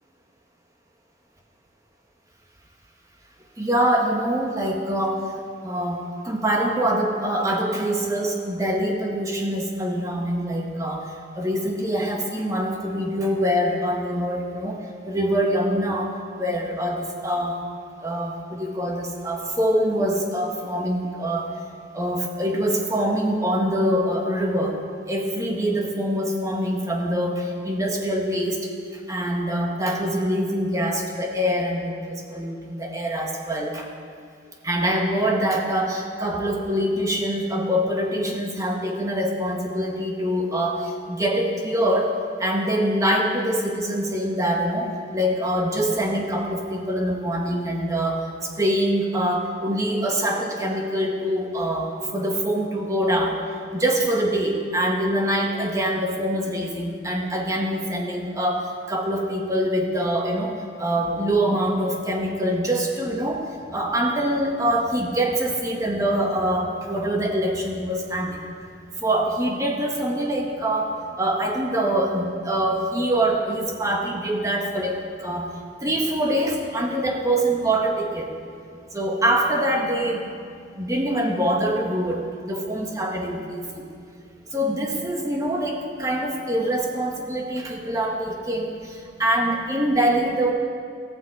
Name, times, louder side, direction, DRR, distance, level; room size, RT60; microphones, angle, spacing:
voice 1, 3.6-5.2 5.6-11.0 11.3-14.8 15.0-17.6 18.0-21.5 21.9-24.8 25.1-28.7 29.1-33.9 34.6-48.2 48.6-53.4 53.7-63.4 63.7-68.4 69.0-75.5 75.8-78.3 78.9-80.2 80.8-83.8 84.5-90.5, right 1 dB, 15° right, 1 dB, 1.5 m, -24 dB
15.0 x 15.0 x 4.8 m, 2.3 s
head